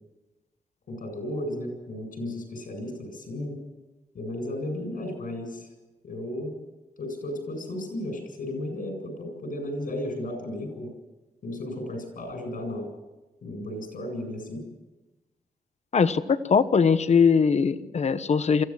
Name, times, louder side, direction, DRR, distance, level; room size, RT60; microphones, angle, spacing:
voice 1, 0.9-3.6 4.1-5.7 6.0-6.5 7.0-10.9 11.4-12.9 13.4-14.6, left 1 dB, 75° left, 4 dB, 7.9 m, -34 dB
voice 2, 15.9-18.6, left 6 dB, 50° left, 13 dB, 1.1 m, -21 dB
24.0 x 15.0 x 7.6 m, 1.1 s
wide cardioid pair, 105°, 15 cm